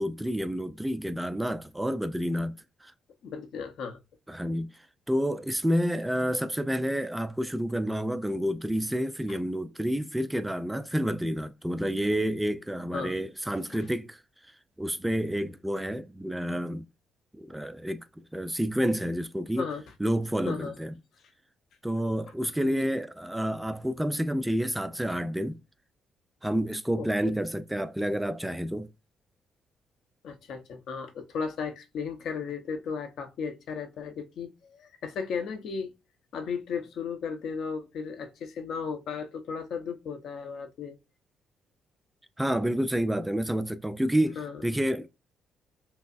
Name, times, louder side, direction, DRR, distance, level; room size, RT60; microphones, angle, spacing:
voice 1, 0.0-2.5 2.8-2.9 4.3-4.8 5.1-14.2 14.8-16.9 17.4-18.0 18.3-19.7 20.0-20.9 21.8-25.6 26.4-28.9 42.4-45.1, equal, 5° right, 0.4 m, -29 dB
voice 2, 3.2-4.0 12.9-13.1 13.6-13.9 19.6-19.8 20.5-20.8 22.6-22.9 26.9-27.3 30.2-35.9 36.3-41.0 44.4-44.6, left 5 dB, 75° left, 0.8 m, -35 dB
5.5 x 2.1 x 2.5 m
cardioid pair, 90°, 0 cm